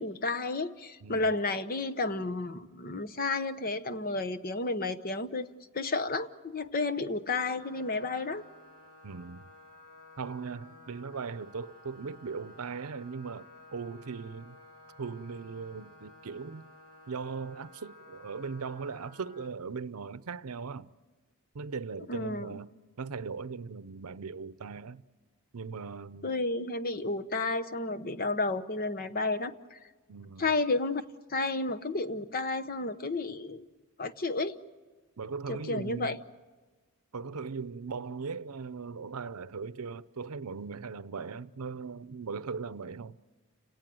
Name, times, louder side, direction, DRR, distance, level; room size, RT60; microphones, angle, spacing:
voice 1, 0.0-8.4 22.1-22.6 26.2-29.8 30.4-31.0 31.3-33.6 34.0-34.6 35.5-36.2, left 3 dB, 40° left, 0.9 m, -32 dB
sound 1, 7.6-19.5, left 2 dB, 85° left, 2.7 m, -54 dB
voice 2, 9.0-9.5 10.2-14.6 15.0-16.7 17.1-20.9 21.5-22.7 23.0-25.0 25.5-26.4 30.1-30.5 35.2-36.2 37.1-43.2, right 5 dB, 80° right, 0.7 m, -39 dB
30.0 x 18.0 x 7.8 m
head